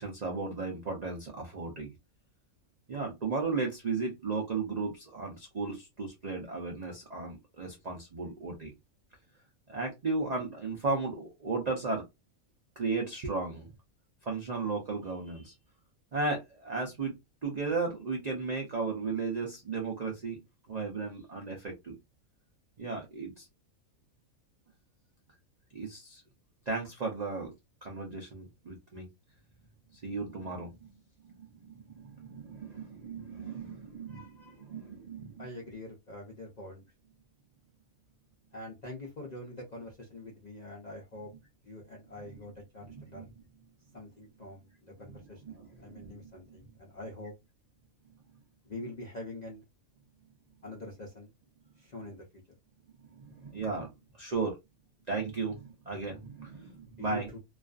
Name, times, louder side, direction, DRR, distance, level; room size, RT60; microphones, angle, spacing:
voice 1, 0.0-1.9 2.9-8.7 9.7-12.0 12.8-13.7 14.2-15.5 16.1-22.0 22.8-23.5 25.7-26.2 26.7-27.5 27.8-29.1 29.9-30.9 31.2-35.5 42.8-43.3 45.1-46.6 53.0-54.6 55.1-57.3, right 4 dB, 60° right, 0 dB, 0.4 m, -35 dB
voice 2, 35.4-36.8 38.5-41.3 41.6-43.3 43.9-47.3 48.6-49.6 50.6-51.3 51.8-52.4 57.0-57.4, left 1 dB, 50° left, -2 dB, 0.5 m, -44 dB
2.4 x 2.4 x 2.3 m, 0.21 s
omnidirectional pair, 1.5 m